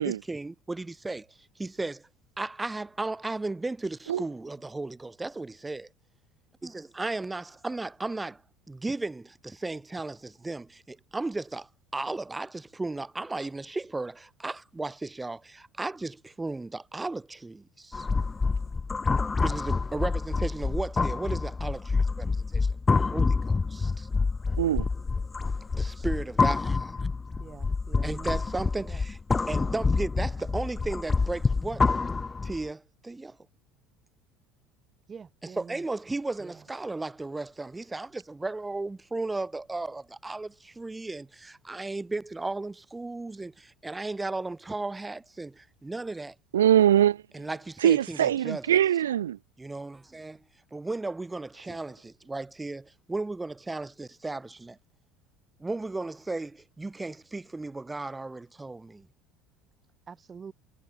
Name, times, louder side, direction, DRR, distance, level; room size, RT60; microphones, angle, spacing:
voice 1, 0.0-2.1 2.4-5.9 6.6-8.4 8.7-18.1 19.4-24.1 25.8-26.9 28.0-29.2 29.5-31.9 32.4-33.4 35.4-46.3 47.3-48.8 49.6-50.4 50.7-54.8 55.6-59.1, right 2 dB, 15° right, 2.9 m, -35 dB
sound 1, 17.9-32.6, left 4 dB, 20° left, 1.6 m, -27 dB
voice 2, 24.6-24.9 46.5-47.2 47.8-49.4, right 11 dB, 85° right, 1.5 m, -22 dB
voice 3, 27.4-28.4 28.8-29.0 29.3-29.5 35.1-35.8 36.4-36.6 60.1-60.5, right 6 dB, 30° right, 5.7 m, -45 dB
hypercardioid pair, 75°, 0 cm